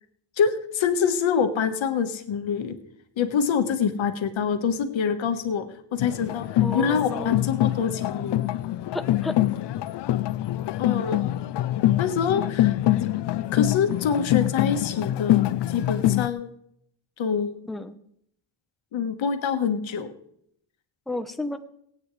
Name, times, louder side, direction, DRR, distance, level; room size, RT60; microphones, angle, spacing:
voice 1, 0.4-2.8 3.2-8.4 10.8-11.3 12.0-12.8 13.5-16.5 17.2-17.6 18.9-20.1, left 6 dB, 80° left, 7 dB, 1.5 m, -26 dB
sound 1, 6.0-16.3, left 14 dB, 65° left, 0.5 m, -24 dB
voice 2, 6.6-7.5 8.9-9.4 17.7-18.0 21.1-21.6, left 1 dB, ahead, 7 dB, 0.8 m, -31 dB
24.0 x 9.1 x 3.2 m, 0.71 s
cardioid pair, 110°, 46 cm